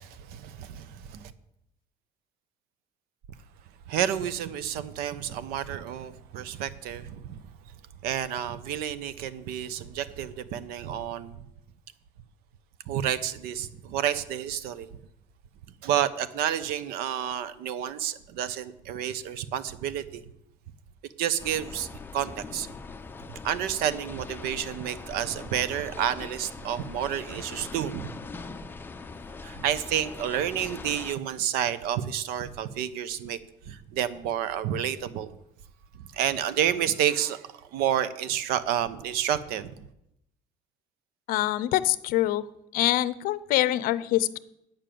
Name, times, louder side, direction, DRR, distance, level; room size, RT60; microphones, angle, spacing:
voice 1, 0.0-1.3 3.9-7.4 8.0-11.4 12.9-14.9 15.8-20.2 21.2-22.7 23.4-28.1 29.4-33.4 33.7-35.3 36.1-39.9, right 10 dB, 80° right, 15 dB, 0.8 m, -30 dB
sound 1, 21.4-31.2, left 4 dB, 15° left, 0.5 m, -42 dB
voice 2, 41.3-42.4 42.7-44.4, left 15 dB, 70° left, 16 dB, 0.6 m, -25 dB
9.0 x 6.8 x 7.6 m, 0.81 s
cardioid pair, 145°, 16 cm